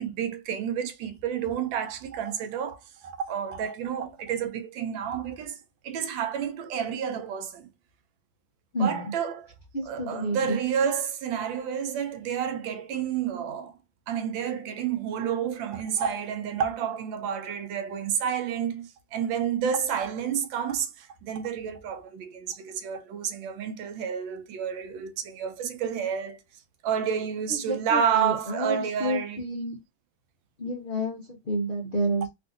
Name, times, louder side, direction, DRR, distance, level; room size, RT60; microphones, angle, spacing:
voice 1, 0.0-7.7 8.8-9.5 9.8-13.7 14.1-26.4 26.8-29.4, right 8 dB, 80° right, 1.3 m, -30 dB
voice 2, 8.7-9.1 9.7-10.6 27.6-29.8 30.6-32.3, right 1 dB, 85° left, 0.4 m, -30 dB
3.6 x 2.5 x 2.4 m
omnidirectional pair, 2.1 m